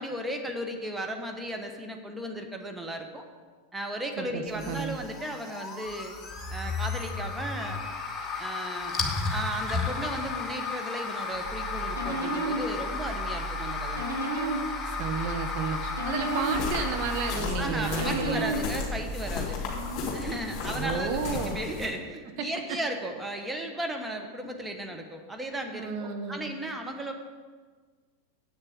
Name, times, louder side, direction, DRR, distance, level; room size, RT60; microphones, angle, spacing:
voice 1, 0.0-3.3 3.7-6.2 6.5-7.8 8.4-9.0 9.3-14.0 17.6-19.6 20.1-21.2 21.5-27.1, right 1 dB, 10° right, 4 dB, 1.1 m, -35 dB
voice 2, 4.2-5.0 14.9-18.5 19.6-20.0 20.7-21.6 25.7-26.5, right 5 dB, 45° right, 5 dB, 0.8 m, -32 dB
sound 1, 4.5-17.4, left 4 dB, 15° left, 1.2 m, -34 dB
sound 2, 11.4-19.3, right 2 dB, 75° right, 2.2 m, -34 dB
sound 3, 16.3-21.9, left 5 dB, 35° left, 2.8 m, -34 dB
8.3 x 6.6 x 7.7 m, 1.5 s
figure-of-eight pair, 90°, 0 cm